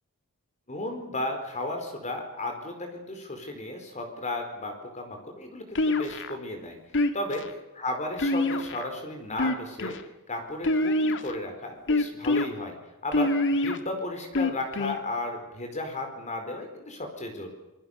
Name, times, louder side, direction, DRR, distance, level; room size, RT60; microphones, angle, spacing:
voice 1, 0.7-6.8 7.1-12.8 13.0-17.5, left 2 dB, 35° left, 4 dB, 4.6 m, -34 dB
sound 1, 5.8-6.4 6.9-7.5 8.2-8.9 9.3-10.0 10.6-11.3 11.9-12.5 13.1-13.8 14.3-15.0, left 2 dB, 60° left, 2.0 m, -25 dB
26.5 x 22.5 x 6.7 m, 1.0 s
head